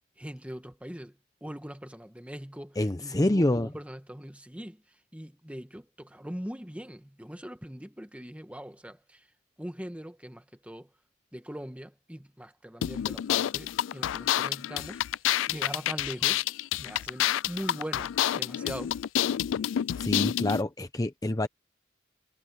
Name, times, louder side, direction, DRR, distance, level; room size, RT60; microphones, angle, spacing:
voice 1, 0.2-9.3 9.6-10.9 11.3-15.0 15.5-16.4 16.8-19.0, equal, 5° right, 1.4 m, -41 dB
voice 2, 2.8-3.7 20.0-21.5, left 1 dB, 20° left, 0.7 m, -27 dB
sound 1, 12.8-20.6, left 11 dB, 85° left, 0.3 m, -28 dB
head